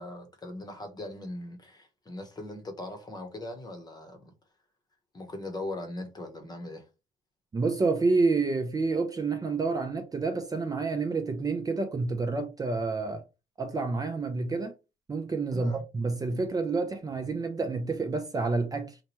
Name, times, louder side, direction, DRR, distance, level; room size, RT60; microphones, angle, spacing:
voice 1, 0.0-4.3 5.1-6.9 15.5-15.8, left 1 dB, 25° left, 0.9 m, -40 dB
voice 2, 7.5-13.2 13.6-14.7 15.1-19.0, right 3 dB, 25° right, 0.5 m, -29 dB
2.9 x 2.2 x 2.9 m
cardioid pair, 90°, 16 cm